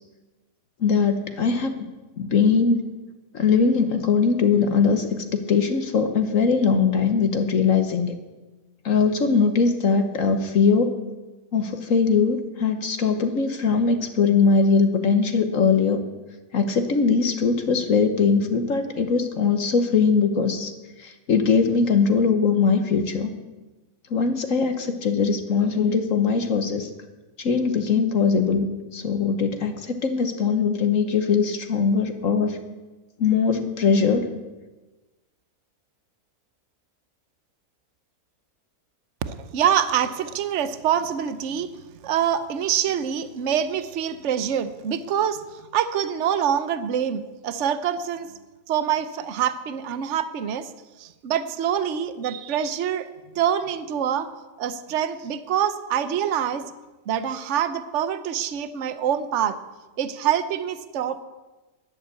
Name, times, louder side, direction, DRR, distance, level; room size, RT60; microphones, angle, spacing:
voice 1, 0.8-1.7 2.2-2.9 3.3-8.1 8.8-11.0 11.5-16.0 16.5-20.7 21.0-23.3 24.1-26.9 27.4-28.7 28.9-32.6 33.2-34.2, left 5 dB, 60° left, 7 dB, 1.4 m, -21 dB
voice 2, 39.3-41.7 42.0-45.4 45.7-48.4 48.7-50.7 51.0-53.1 53.3-54.3 54.6-56.6 57.1-59.6 60.0-61.2, right 9 dB, 55° right, 12 dB, 1.1 m, -25 dB
11.0 x 11.0 x 8.3 m, 1.2 s
omnidirectional pair, 1.6 m